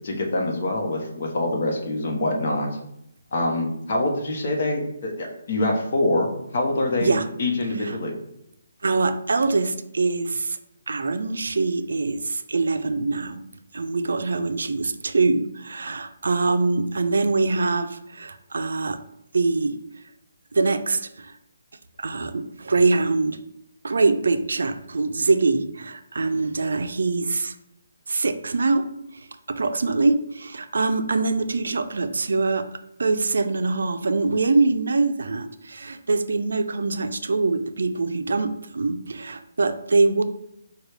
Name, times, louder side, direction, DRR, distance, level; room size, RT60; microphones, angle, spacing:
voice 1, 0.0-2.7 3.3-8.1, left 2 dB, 45° left, 0 dB, 1.0 m, -25 dB
voice 2, 8.8-10.6 10.9-13.4 13.7-19.0 19.3-19.7 20.5-21.3 22.0-23.4 23.8-27.5 28.1-28.9 29.5-32.6 33.0-40.2, right 3 dB, 75° right, 9 dB, 0.4 m, -23 dB
6.0 x 2.3 x 3.3 m, 0.78 s
hypercardioid pair, 165°, 0 cm